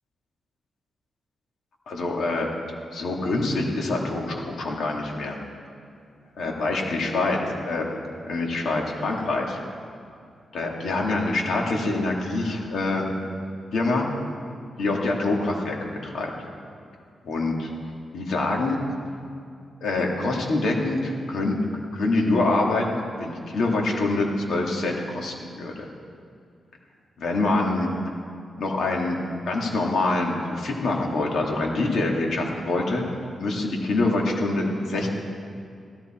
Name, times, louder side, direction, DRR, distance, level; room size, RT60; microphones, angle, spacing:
voice 1, 1.9-2.5 2.9-5.4 6.4-8.0 8.2-9.6 10.5-13.1 13.7-14.1 14.8-16.3 17.2-17.7 18.1-18.8 19.8-21.6 21.9-25.9 27.2-27.9 28.6-33.0 33.4-35.1, left 2 dB, 75° left, 0 dB, 2.3 m, -25 dB
15.5 x 13.5 x 4.5 m, 2.4 s
cardioid pair, 115°, 0 cm